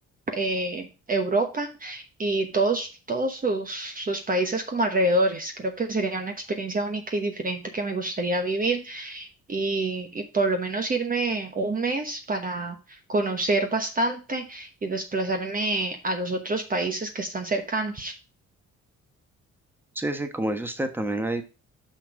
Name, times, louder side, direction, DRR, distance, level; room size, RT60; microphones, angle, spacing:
voice 1, 0.3-18.1, right 2 dB, 30° right, 5 dB, 1.0 m, -27 dB
voice 2, 19.9-21.4, right 1 dB, 5° right, 7 dB, 1.3 m, -28 dB
6.2 x 5.9 x 4.6 m, 0.32 s
cardioid pair, 90°, 30 cm